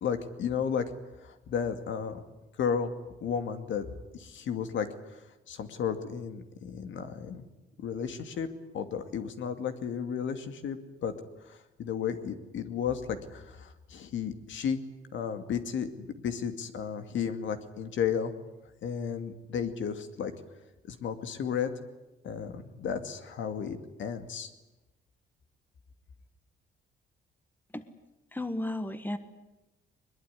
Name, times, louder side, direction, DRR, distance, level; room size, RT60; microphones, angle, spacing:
voice 1, 0.0-0.9 1.2-2.2 2.6-2.9 3.2-3.9 4.1-7.5 7.8-8.5 8.7-11.1 11.5-14.8 15.1-18.3 18.8-20.3 20.8-21.7 22.2-24.5, left 7 dB, 75° left, 8 dB, 2.4 m, -33 dB
voice 2, 28.3-29.2, left 1 dB, 10° left, 10 dB, 1.6 m, -33 dB
22.0 x 21.5 x 9.9 m, 1.0 s
cardioid pair, 90°, 20 cm